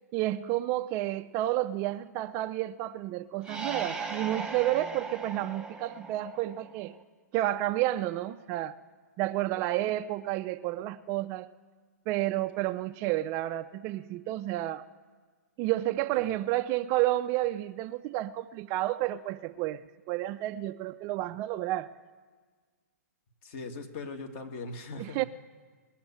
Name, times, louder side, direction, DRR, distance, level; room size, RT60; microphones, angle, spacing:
voice 1, 0.1-7.0 7.3-8.8 9.2-11.5 12.1-14.8 15.6-19.8 20.1-21.9 25.0-25.2, right 15 dB, 30° right, 0.4 m, -30 dB
sound 1, 3.4-7.0, right 4 dB, 5° right, 1.2 m, -38 dB
voice 2, 23.4-25.3, left 3 dB, 40° left, 1.9 m, -40 dB
20.0 x 7.2 x 10.0 m
hypercardioid pair, 135°, 9 cm